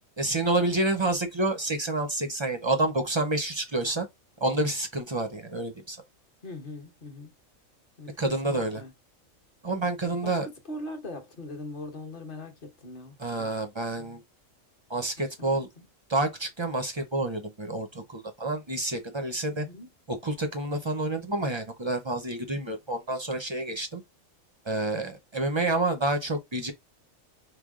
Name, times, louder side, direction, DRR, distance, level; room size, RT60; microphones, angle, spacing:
voice 1, 0.2-4.1 4.4-6.0 8.2-8.8 9.6-10.5 13.2-14.2 14.9-15.7 16.1-19.7 20.1-24.0 24.7-26.7, right 2 dB, 40° right, 0.4 m, -28 dB
voice 2, 6.4-7.3 8.0-8.9 10.0-13.5 14.0-14.2 15.2-15.9 19.5-19.9, left 2 dB, 45° left, 1.0 m, -41 dB
5.0 x 2.0 x 3.6 m
omnidirectional pair, 1.4 m